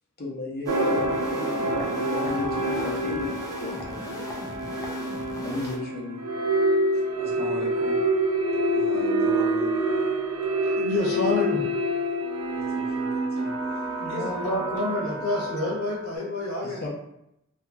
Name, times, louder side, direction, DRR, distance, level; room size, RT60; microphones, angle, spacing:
voice 1, 0.2-4.6 5.4-6.2 16.6-16.9, left 2 dB, 45° left, -3 dB, 0.7 m, -35 dB
sound 1, 0.6-5.8, left 1 dB, 15° left, 0.4 m, -39 dB
sound 2, 0.7-16.0, right 1 dB, 85° right, 0.4 m, -27 dB
voice 2, 7.2-8.0 8.5-9.7 12.5-14.8, equal, 30° right, -7 dB, 1.1 m, -39 dB
voice 3, 10.6-11.6 14.0-16.8, left 2 dB, 85° left, -3 dB, 0.9 m, -28 dB
2.8 x 2.8 x 2.3 m, 0.80 s
head